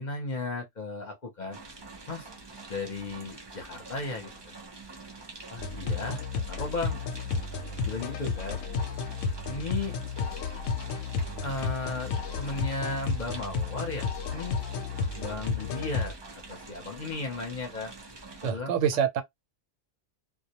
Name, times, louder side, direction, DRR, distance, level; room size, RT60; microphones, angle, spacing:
voice 1, 0.0-1.6 2.1-2.3 2.7-4.6 5.5-6.2 6.5-7.0 7.8-8.6 9.5-10.0 11.4-12.1 12.4-14.6 15.1-16.2 16.5-17.9 18.4-19.0, left 3 dB, 45° left, 0.7 m, -35 dB
sound 1, 1.5-18.5, right 3 dB, 30° right, 0.5 m, -46 dB
sound 2, 5.6-16.1, left 5 dB, 90° left, 0.9 m, -32 dB
voice 2, 18.4-19.2, right 8 dB, 90° right, 1.0 m, -26 dB
2.2 x 2.1 x 2.8 m
omnidirectional pair, 1.2 m